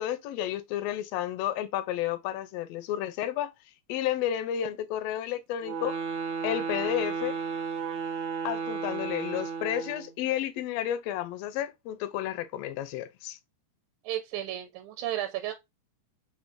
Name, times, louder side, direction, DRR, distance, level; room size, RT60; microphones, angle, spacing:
voice 1, 0.0-3.5 3.9-6.0 6.4-7.4 8.4-13.4, left 11 dB, 80° left, 1.5 m, -31 dB
sound 1, 5.6-10.2, right 5 dB, 65° right, 1.5 m, -33 dB
voice 2, 14.0-15.5, right 13 dB, 85° right, 2.0 m, -33 dB
5.3 x 2.7 x 2.5 m
omnidirectional pair, 3.5 m